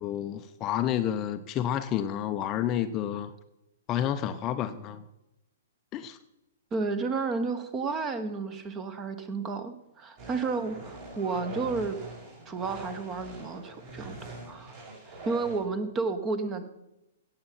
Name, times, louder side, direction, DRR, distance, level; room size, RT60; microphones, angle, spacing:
voice 1, 0.0-3.3 3.9-5.0 5.9-6.2, left 10 dB, 30° left, 9 dB, 0.6 m, -30 dB
voice 2, 6.7-12.0 12.5-14.2 14.5-14.8 15.2-16.7, right 4 dB, 20° right, 11 dB, 1.2 m, -31 dB
sound 1, 10.2-15.6, right 2 dB, 40° right, 5.1 m, -43 dB
17.0 x 6.7 x 5.9 m, 0.91 s
figure-of-eight pair, 115°, 0 cm